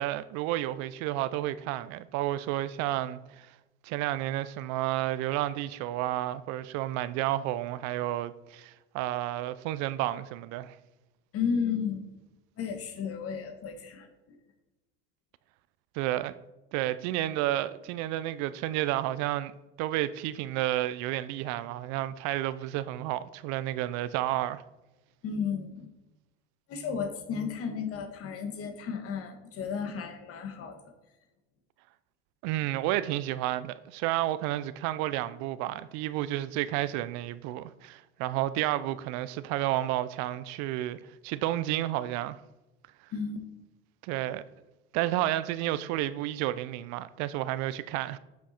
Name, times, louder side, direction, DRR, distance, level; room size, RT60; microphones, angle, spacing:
voice 1, 0.0-3.5 3.8-10.8 15.9-16.3 16.7-19.5 19.8-24.6 32.4-42.4 44.0-44.4 44.9-48.2, right 14 dB, 60° right, 0.5 m, -31 dB
voice 2, 11.3-12.0 12.6-14.1 25.2-25.9 26.7-30.8 43.1-43.4, left 6 dB, 45° left, 1.4 m, -33 dB
7.1 x 5.9 x 4.3 m
supercardioid pair, 105°, 31 cm